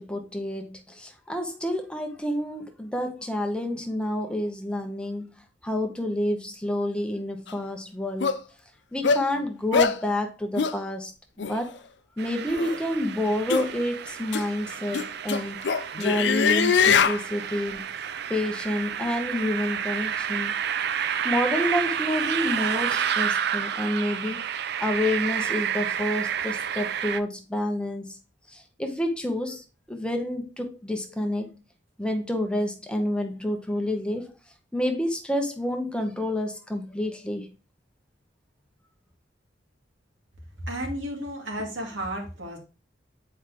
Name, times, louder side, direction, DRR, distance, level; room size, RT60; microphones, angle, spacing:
voice 1, 0.0-5.3 5.6-8.4 8.9-11.1 11.5-11.8 12.2-15.6 16.0-17.8 18.3-20.5 21.2-24.4 24.8-28.1 28.5-31.5 32.0-34.3 34.7-37.5, left 1 dB, 5° left, 0.8 m, -29 dB
sound 1, 7.5-7.6 8.2-8.4 9.0-9.2 9.7-10.0 10.6-10.8 11.4-11.5 12.5-12.8 13.5-13.7 14.3-14.4 14.9-17.2, left 6 dB, 65° left, 0.5 m, -22 dB
sound 2, 12.2-27.2, right 8 dB, 60° right, 0.4 m, -30 dB
voice 2, 40.6-42.6, equal, 85° right, 2.3 m, -33 dB
8.1 x 4.7 x 2.9 m
head